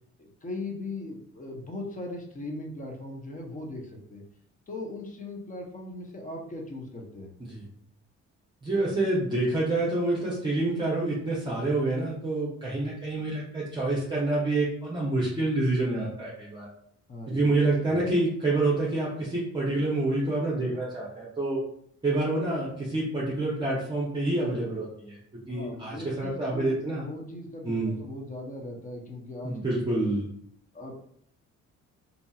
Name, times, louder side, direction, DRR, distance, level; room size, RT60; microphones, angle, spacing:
voice 1, 0.2-4.2 4.7-7.3 17.1-18.1 25.5-29.7 30.7-30.9, left 2 dB, 25° left, 1 dB, 0.7 m, -39 dB
voice 2, 8.6-16.7 17.3-21.6 22.0-25.2 25.5-27.0 27.6-27.9 29.4-30.3, right 2 dB, 15° right, -6 dB, 0.7 m, -27 dB
2.7 x 2.6 x 2.3 m, 0.69 s
cardioid pair, 90°, 30 cm